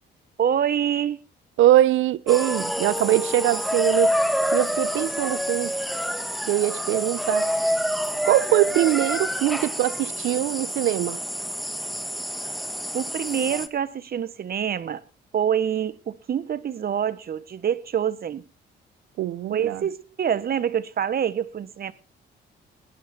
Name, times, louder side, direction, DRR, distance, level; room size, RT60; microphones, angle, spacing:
voice 1, 0.4-1.2 12.9-15.0 15.3-18.4 19.5-21.9, right 9 dB, 50° right, 1.3 m, -26 dB
voice 2, 1.6-4.1 4.5-5.7 6.5-7.5 8.2-11.2 19.2-19.8, right 14 dB, 85° right, 0.8 m, -22 dB
sound 1, 2.3-13.7, equal, ahead, 1.4 m, -27 dB
18.5 x 11.0 x 4.5 m
cardioid pair, 90°, 20 cm